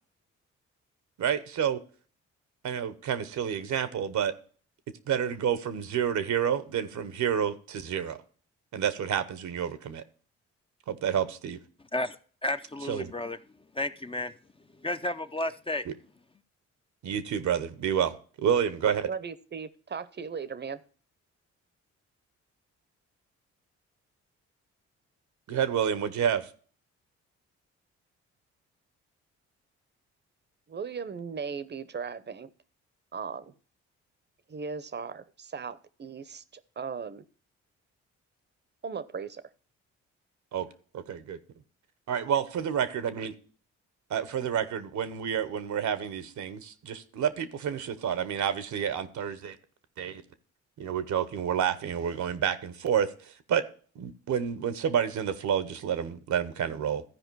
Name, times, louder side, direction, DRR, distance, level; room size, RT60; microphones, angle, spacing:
voice 1, 1.2-1.8 2.6-4.3 5.1-8.2 8.7-10.0 10.9-11.6 12.9-13.1 15.9-16.0 17.0-19.1 25.5-26.5 40.5-40.7 41.1-41.4 42.1-43.3 44.1-49.6 50.0-50.2 50.8-53.6 53.9-57.0, right 8 dB, 70° right, 1.0 m, -29 dB
voice 2, 11.9-13.4 13.7-14.3 14.7-15.8, left 1 dB, 20° left, 0.6 m, -32 dB
voice 3, 19.1-20.8 30.7-32.5 33.1-33.5 34.5-37.2 38.8-39.4, right 6 dB, 35° right, 0.8 m, -37 dB
13.5 x 4.9 x 4.7 m
supercardioid pair, 60°, 30 cm